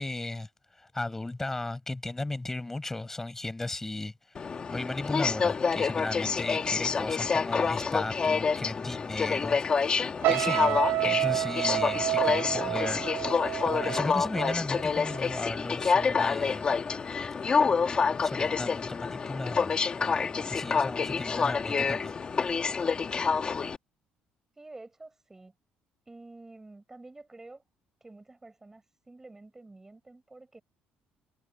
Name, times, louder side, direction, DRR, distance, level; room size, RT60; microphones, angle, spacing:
voice 1, 0.0-4.4 4.7-9.6 10.3-16.7 17.7-22.2, left 2 dB, 10° left, 4.9 m, -36 dB
Aircraft, 4.3-23.8, left 5 dB, 30° left, 1.7 m, -28 dB
sound 1, 10.2-15.5 15.8-16.2, right 16 dB, 70° right, 0.4 m, -30 dB
voice 2, 24.6-25.5 26.1-27.6 28.0-30.6, right 2 dB, 10° right, 5.8 m, -49 dB
cardioid pair, 140°, 3 cm